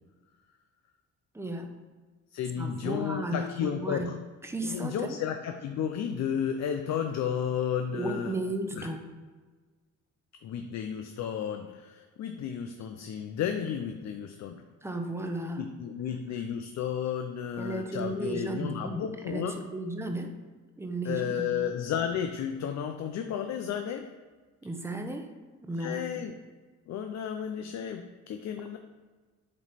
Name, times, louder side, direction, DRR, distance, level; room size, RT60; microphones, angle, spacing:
voice 1, 1.3-1.7 2.6-4.1 4.4-5.2 7.9-9.1 14.8-15.6 17.6-20.3 20.8-21.5 24.6-25.3 25.6-26.0, right 1 dB, 10° right, 4 dB, 0.7 m, -34 dB
voice 2, 2.3-4.2 4.6-8.3 8.7-8.9 10.4-14.6 15.6-19.5 21.0-24.1 25.8-26.4 26.9-28.8, left 8 dB, 65° left, 6 dB, 0.5 m, -33 dB
7.5 x 3.1 x 4.2 m, 1.4 s
cardioid pair, 90°, 30 cm